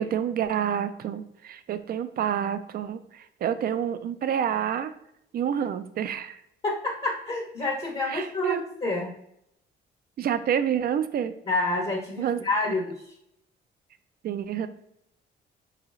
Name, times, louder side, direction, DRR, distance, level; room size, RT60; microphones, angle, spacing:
voice 1, 0.0-4.9 5.3-6.4 8.1-8.6 10.2-11.3 12.2-12.7 14.2-14.7, right 9 dB, 50° right, 12 dB, 0.4 m, -28 dB
voice 2, 6.6-9.1 11.5-13.0, left 2 dB, 30° left, -1 dB, 0.7 m, -28 dB
3.9 x 3.2 x 2.3 m, 0.77 s
cardioid pair, 90°, 20 cm